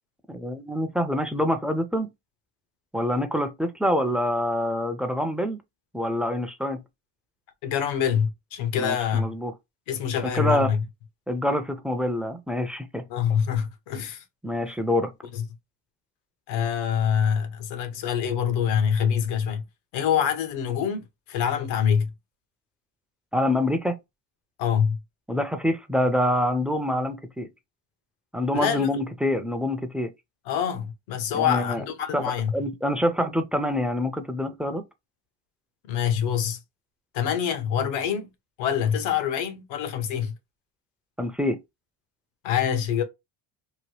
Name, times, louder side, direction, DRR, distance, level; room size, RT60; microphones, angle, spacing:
voice 1, 0.3-2.1 2.9-5.6 5.9-6.8 8.8-9.5 10.2-10.7 11.3-13.0 14.4-15.1 23.3-24.0 25.3-27.5 28.3-30.1 31.3-31.8 32.1-32.2 32.5-34.8 41.2-41.6, left 1 dB, ahead, 0.4 m, -26 dB
voice 2, 7.6-9.4 9.9-10.8 13.1-14.2 15.3-15.4 16.5-19.6 19.9-22.1 24.6-25.0 28.5-28.9 30.5-32.5 35.8-36.6 37.1-38.3 38.6-40.3 42.4-43.0, left 8 dB, 85° left, 0.9 m, -25 dB
3.0 x 2.1 x 3.1 m
supercardioid pair, 85°, 45 cm